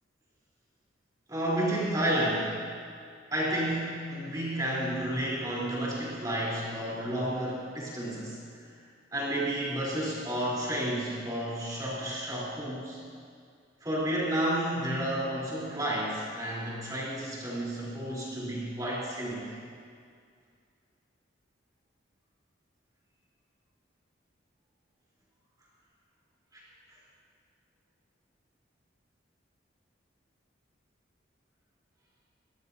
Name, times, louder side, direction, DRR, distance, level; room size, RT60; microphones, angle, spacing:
voice 1, 1.3-2.5 3.3-8.4 9.1-13.0 13.8-19.5, right 1 dB, 20° right, -7 dB, 3.7 m, -31 dB
23.5 x 19.0 x 2.8 m, 2.2 s
head